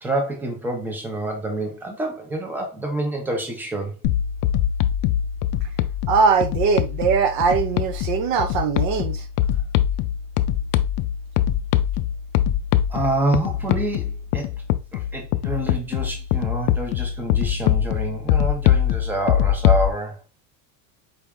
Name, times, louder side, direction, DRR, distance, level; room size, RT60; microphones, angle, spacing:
voice 1, 0.0-4.0 12.9-14.5 14.9-20.2, right 2 dB, 5° right, 0.7 m, -27 dB
sound 1, 4.0-19.9, left 11 dB, 70° left, 0.5 m, -23 dB
voice 2, 6.1-9.2, right 5 dB, 50° right, 0.8 m, -21 dB
4.8 x 2.8 x 3.5 m
cardioid pair, 165°, 48 cm